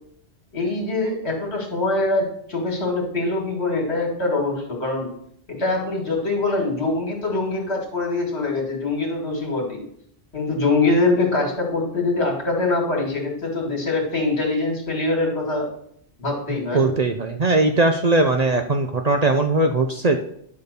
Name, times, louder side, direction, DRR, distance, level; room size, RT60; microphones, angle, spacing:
voice 1, 0.5-5.1 5.5-9.8 10.3-15.7 16.2-16.9, left 2 dB, 70° left, 0 dB, 2.6 m, -23 dB
voice 2, 16.7-20.2, right 2 dB, 45° right, 5 dB, 0.6 m, -19 dB
10.5 x 4.0 x 6.8 m, 0.69 s
omnidirectional pair, 1.1 m